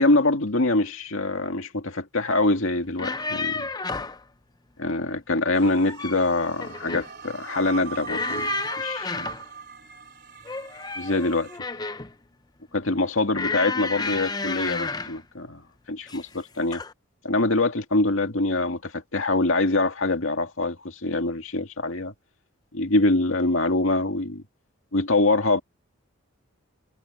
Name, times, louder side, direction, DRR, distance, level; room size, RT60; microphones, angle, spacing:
voice 1, 0.0-3.7 4.8-8.5 8.8-9.3 11.0-11.5 12.7-16.8 17.2-22.1 22.7-24.4 24.9-25.6, left 2 dB, 70° left, 2.2 m, -24 dB
sound 1, 2.8-4.2 5.6-6.3 6.6-7.1 8.0-9.5 10.4-12.1 13.3-15.2 16.1-16.4 16.7-16.9, left 4 dB, 20° left, 0.5 m, -31 dB
sound 2, 5.5-11.6, right 6 dB, 50° right, 4.5 m, -39 dB
head